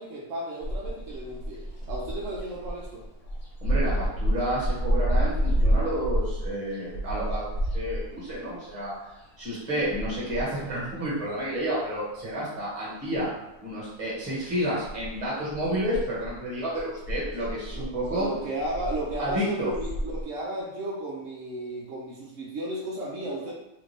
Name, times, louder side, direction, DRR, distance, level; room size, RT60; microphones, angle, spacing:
voice 1, 0.0-3.0 8.0-8.1 17.7-17.9 18.1-23.5, right 1 dB, 90° right, -4 dB, 0.6 m, -34 dB
sound 1, 0.6-12.2 12.5-13.8 14.1-20.2, right 1 dB, 55° left, 0.9 m, -30 dB
voice 2, 3.6-7.5 7.7-9.1 9.4-13.3 13.6-18.3 19.2-19.7 23.4-23.5, equal, 20° right, -6 dB, 1.1 m, -30 dB
3.4 x 2.4 x 3.2 m, 0.89 s
omnidirectional pair, 2.1 m